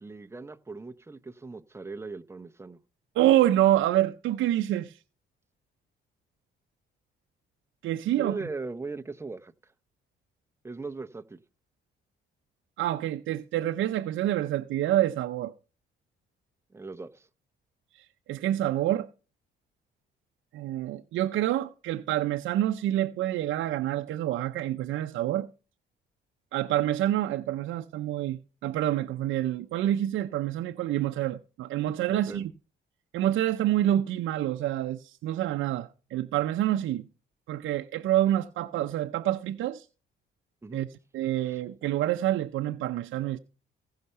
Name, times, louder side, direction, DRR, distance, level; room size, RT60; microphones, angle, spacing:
voice 1, 0.0-2.8 8.2-9.5 10.6-11.4 16.7-17.3 32.1-32.4 40.6-40.8 41.4-41.6, right 3 dB, 15° right, 0.8 m, -39 dB
voice 2, 3.2-5.0 7.8-8.4 12.8-15.5 17.9-19.1 20.5-25.5 26.5-32.5 33.1-37.1 37.5-39.9 40.7-40.9 41.1-43.4, right 13 dB, 80° right, 0.6 m, -27 dB
16.0 x 5.7 x 5.5 m
cardioid pair, 90°, 20 cm